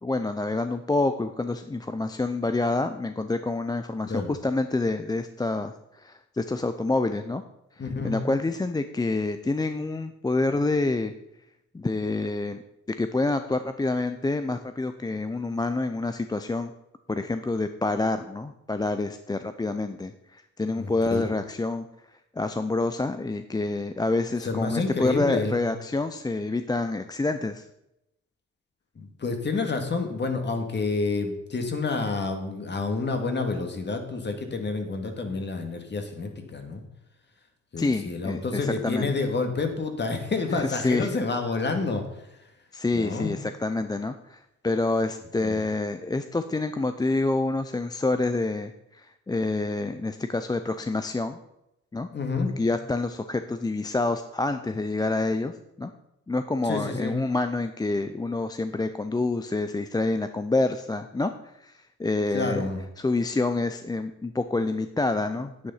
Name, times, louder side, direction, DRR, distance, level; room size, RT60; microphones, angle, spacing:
voice 1, 0.0-7.4 8.0-11.1 11.7-12.6 13.0-16.7 17.1-21.9 22.4-27.6 37.8-39.1 40.5-41.1 42.7-51.4 51.9-52.1 52.6-55.5 55.8-55.9 56.3-62.7 63.0-65.7, left 2 dB, 15° left, 9 dB, 0.5 m, -27 dB
voice 2, 4.0-4.3 7.8-8.1 20.8-21.3 24.4-25.6 29.0-36.8 37.7-42.0 42.9-43.4 45.4-45.6 52.1-52.6 56.6-57.2 62.3-62.8, left 3 dB, 35° left, 5 dB, 2.1 m, -29 dB
9.6 x 8.8 x 5.6 m, 0.85 s
cardioid pair, 90°, 30 cm